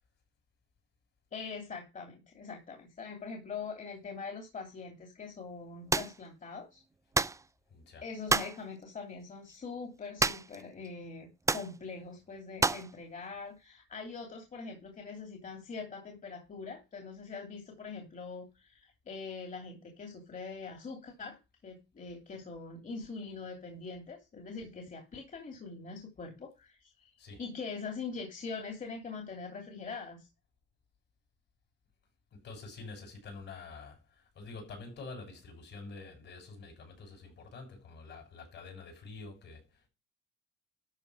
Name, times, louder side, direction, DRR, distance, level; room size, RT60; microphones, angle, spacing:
voice 1, 1.3-6.8 8.0-27.1 27.4-30.3, left 4 dB, 40° left, 2.9 m, -43 dB
sound 1, 5.9-6.2 7.1-7.4 8.3-8.6 10.2-10.6 10.9-11.0 11.5-11.7 12.6-12.9, right 3 dB, 15° right, 0.5 m, -28 dB
voice 2, 7.7-8.0 27.2-27.4 32.3-39.9, left 3 dB, 65° left, 6.8 m, -47 dB
12.5 x 4.5 x 6.2 m
cardioid pair, 90°, 20 cm